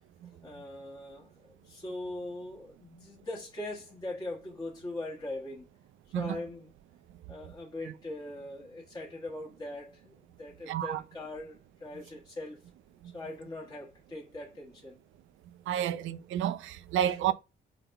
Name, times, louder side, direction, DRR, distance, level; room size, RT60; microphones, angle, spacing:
voice 1, 0.2-5.7 6.1-6.7 7.3-12.6 13.1-15.0 17.0-17.2, left 1 dB, 20° left, 1.3 m, -41 dB
voice 2, 10.7-11.0 13.0-13.1 15.7-17.3, right 10 dB, 80° right, 0.5 m, -30 dB
4.0 x 3.4 x 3.9 m
cardioid pair, 90°, 20 cm